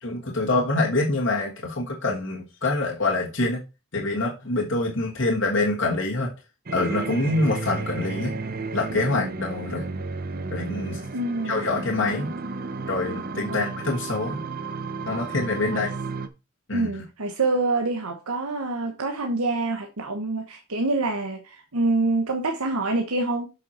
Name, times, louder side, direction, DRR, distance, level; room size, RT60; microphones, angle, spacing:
voice 1, 0.0-3.6 3.9-6.3 6.7-8.3 8.7-9.9 10.5-11.0 11.4-12.3 12.9-14.4 15.1-15.9 16.7-16.9, left 2 dB, 55° left, 1.5 m, -25 dB
sound 1, 6.7-16.3, right 3 dB, 40° right, 0.7 m, -33 dB
voice 2, 11.1-11.7 13.5-13.7 15.7-15.9 16.7-23.5, right 2 dB, 85° right, 1.1 m, -26 dB
7.6 x 5.8 x 4.2 m
head